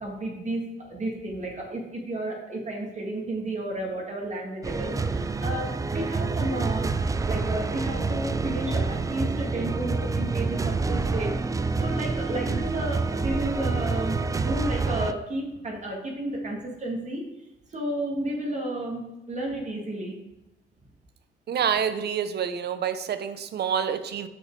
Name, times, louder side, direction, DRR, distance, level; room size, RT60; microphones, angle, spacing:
voice 1, 0.0-7.0 7.2-11.3 11.8-17.2 17.7-20.2, right 1 dB, 35° right, -1 dB, 1.8 m, -32 dB
sound 1, 4.6-15.1, right 4 dB, 15° right, 0.4 m, -27 dB
voice 2, 21.5-24.3, right 8 dB, 55° right, 11 dB, 0.7 m, -27 dB
6.5 x 5.7 x 4.5 m, 0.94 s
cardioid pair, 90°, 20 cm